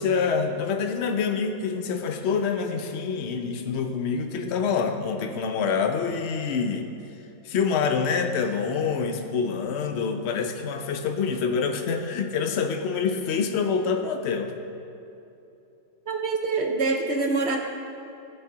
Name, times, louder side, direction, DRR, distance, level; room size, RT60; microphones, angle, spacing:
voice 1, 0.0-6.9 7.4-14.5, left 5 dB, 70° left, 5 dB, 0.6 m, -26 dB
voice 2, 16.1-17.6, right 3 dB, 60° right, 2 dB, 0.7 m, -25 dB
17.0 x 5.8 x 3.9 m, 2.8 s
omnidirectional pair, 2.1 m